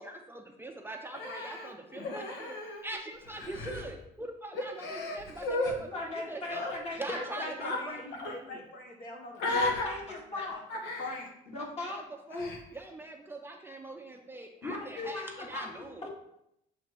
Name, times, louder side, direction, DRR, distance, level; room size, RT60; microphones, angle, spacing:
voice 1, 0.0-6.7 7.0-8.0 11.9-12.0 12.3-16.1, right 2 dB, 15° right, 2 dB, 0.5 m, -43 dB
Human voice, 1.1-3.0 3.3-3.8 4.5-5.7 6.4-6.7 7.6-7.8 8.1-8.4 9.4-9.9 10.7-11.2 12.3-12.6, left 2 dB, 85° left, 1.1 m, -34 dB
voice 2, 5.9-8.6 9.5-10.6 11.5-12.0 14.6-16.1, left 2 dB, 40° left, -3 dB, 2.0 m, -39 dB
voice 3, 7.1-9.7 10.1-10.2 10.5-10.6 11.0-11.3, left 2 dB, 55° left, 0 dB, 1.1 m, -42 dB
7.2 x 2.9 x 4.5 m, 0.79 s
cardioid pair, 110°, 17 cm